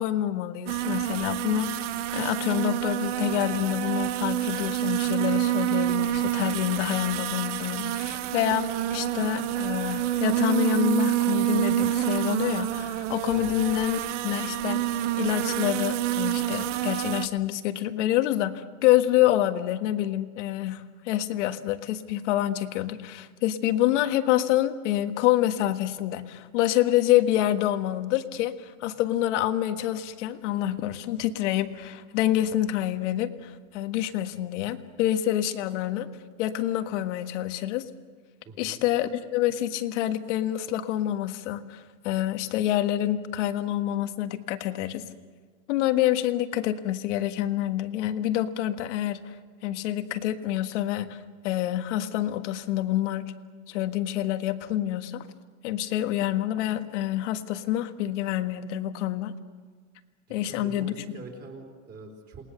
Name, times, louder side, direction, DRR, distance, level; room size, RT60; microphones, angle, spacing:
voice 1, 0.0-1.8 2.1-14.8 15.2-36.1 36.4-37.9 38.6-45.0 45.7-49.2 49.6-51.2 51.4-53.3 53.7-55.2 55.6-59.3 60.3-60.9, left 13 dB, 60° left, 8 dB, 1.6 m, -27 dB
sound 1, 0.7-17.3, right 13 dB, 60° right, 1.1 m, -28 dB
voice 2, 38.4-38.8 60.3-62.5, right 3 dB, 25° right, 1 dB, 4.1 m, -44 dB
28.0 x 20.0 x 6.7 m, 1.5 s
supercardioid pair, 165°, 40 cm